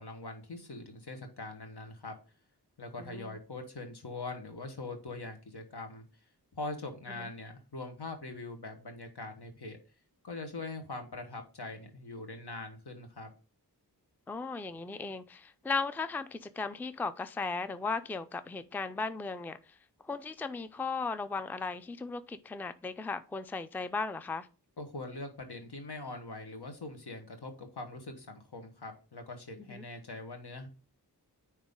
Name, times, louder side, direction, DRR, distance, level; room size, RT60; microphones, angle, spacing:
voice 1, 0.0-2.1 2.8-6.0 6.5-9.8 10.2-13.3 24.8-30.7, left 2 dB, 70° left, 1.4 m, -42 dB
voice 2, 3.0-3.4 7.2-7.3 14.3-19.8 20.0-24.5 29.7-29.8, left 4 dB, 5° left, 0.4 m, -36 dB
9.3 x 3.2 x 3.6 m
wide cardioid pair, 50°, 40 cm